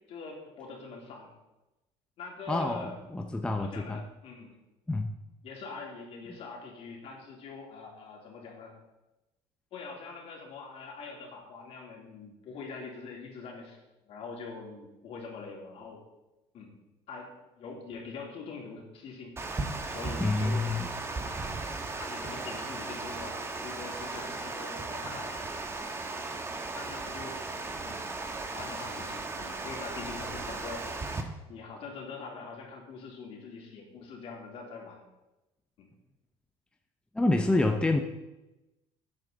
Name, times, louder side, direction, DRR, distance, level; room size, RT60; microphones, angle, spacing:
voice 1, 0.1-1.3 2.2-3.0 3.5-4.5 5.4-8.7 9.7-13.8 14.1-16.0 16.5-16.7 17.1-17.3 17.6-19.3 19.9-20.7 21.2-21.4 22.0-25.6 26.8-27.4 27.8-28.0 28.5-30.8 31.5-35.0 35.8-35.9, left 4 dB, 55° left, -1 dB, 3.4 m, -43 dB
voice 2, 2.5-4.0 4.9-5.1 20.2-20.9 37.1-38.0, left 2 dB, 10° left, 4 dB, 0.7 m, -27 dB
Water, 19.4-31.2, right 3 dB, 20° right, 1.3 m, -36 dB
12.5 x 9.0 x 4.0 m, 1.0 s
cardioid pair, 115°, 12 cm